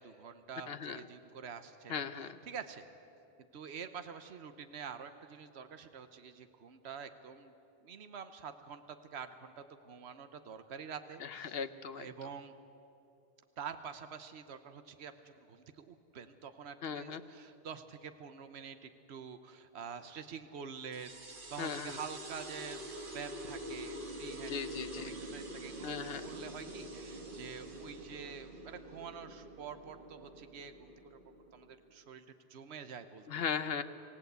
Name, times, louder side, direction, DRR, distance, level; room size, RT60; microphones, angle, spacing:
voice 1, 0.0-2.9 3.5-7.5 7.8-11.6 12.0-12.5 13.6-21.2 21.5-25.9 26.2-30.7 31.5-33.6, right 6 dB, 75° right, 9 dB, 1.2 m, -47 dB
voice 2, 0.7-1.0 1.9-2.4 11.2-12.1 16.8-17.2 21.6-22.0 24.5-25.2 25.8-26.2 33.3-33.8, left 6 dB, 65° left, 12 dB, 1.1 m, -38 dB
sound 1, 20.9-31.9, right 1 dB, 50° right, 1.9 m, -46 dB
26.5 x 16.5 x 8.1 m, 2.8 s
omnidirectional pair, 1.1 m